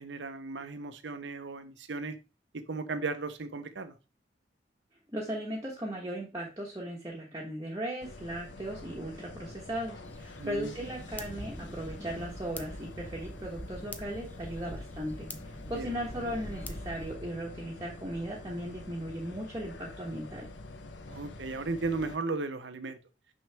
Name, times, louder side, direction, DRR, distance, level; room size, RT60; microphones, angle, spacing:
voice 1, 0.0-2.2 2.5-3.9 10.4-10.7 15.8-15.9 21.1-23.0, right 3 dB, 80° right, 10 dB, 0.8 m, -35 dB
voice 2, 5.1-20.5, right 1 dB, 20° right, -3 dB, 1.2 m, -37 dB
sound 1, 8.0-22.2, left 2 dB, 90° left, 0.9 m, -47 dB
sound 2, 10.0-17.1, left 1 dB, 10° left, 0.6 m, -44 dB
6.2 x 5.6 x 3.4 m, 0.30 s
head